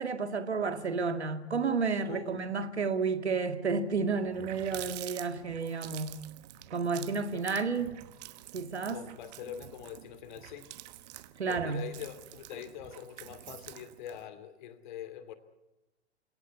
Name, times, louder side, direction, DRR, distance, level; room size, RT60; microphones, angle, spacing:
voice 1, 0.0-6.2 6.7-8.0 8.5-9.0 11.4-11.9, right 5 dB, 70° right, 2.2 m, -31 dB
voice 2, 2.1-2.4 7.3-7.5 8.9-10.8 11.5-15.3, left 9 dB, 45° left, 2.5 m, -44 dB
Water tap faucet, 3.8-3.9 4.2-14.3, right 15 dB, 35° right, 1.1 m, -47 dB
28.5 x 17.5 x 8.2 m
figure-of-eight pair, 110°, 35 cm